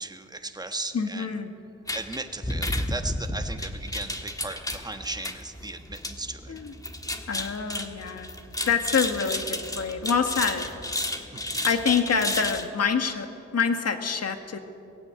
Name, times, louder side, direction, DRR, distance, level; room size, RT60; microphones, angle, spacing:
voice 1, 0.0-1.4 1.9-6.5 11.1-11.4, right 2 dB, 15° right, 6 dB, 1.3 m, -37 dB
voice 2, 0.9-1.5 6.5-6.7 7.3-8.3 8.7-10.7 11.6-13.3 13.5-14.6, left 6 dB, 60° left, 6 dB, 1.8 m, -26 dB
sound 1, 1.9-12.7, left 1 dB, 10° left, 1.5 m, -32 dB
20.0 x 15.5 x 9.4 m, 2.6 s
wide cardioid pair, 110°, 29 cm